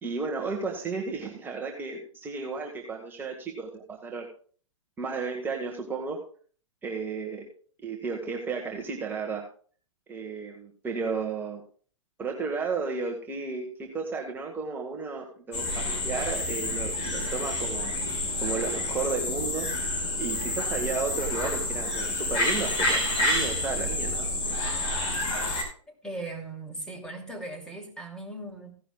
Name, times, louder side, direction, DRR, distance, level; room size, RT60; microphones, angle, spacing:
voice 1, 0.0-4.3 5.0-6.2 6.8-7.4 7.8-9.4 10.1-11.6 12.2-17.9 18.4-19.7 20.2-24.3, right 4 dB, 10° right, 1.5 m, -33 dB
sound 1, 15.5-25.6, left 1 dB, 30° left, 4.5 m, -29 dB
voice 2, 25.9-28.7, right 2 dB, 5° left, 2.8 m, -38 dB
16.0 x 11.0 x 2.3 m
figure-of-eight pair, 115°, 17 cm